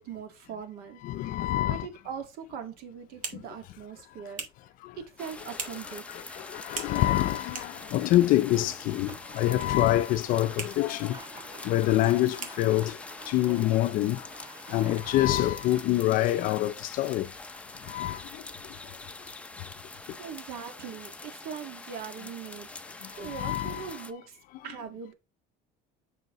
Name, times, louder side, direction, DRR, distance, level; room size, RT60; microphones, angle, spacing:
voice 1, 0.0-1.0 1.7-4.5 4.9-6.5 15.4-15.5 20.2-24.4 24.6-25.1, right 7 dB, 65° right, 1.8 m, -41 dB
voice 2, 1.0-1.9 5.9-11.2 11.6-13.0 13.3-14.3 14.7-17.3 17.9-18.2 23.2-23.8, left 15 dB, 55° left, 0.5 m, -26 dB
sound 1, 2.7-15.1, right 5 dB, 50° right, 1.7 m, -46 dB
sound 2, 5.2-24.1, left 3 dB, 5° left, 0.5 m, -44 dB
sound 3, 8.4-15.7, right 2 dB, 25° right, 2.7 m, -48 dB
7.9 x 5.5 x 3.0 m
cardioid pair, 150°, 17 cm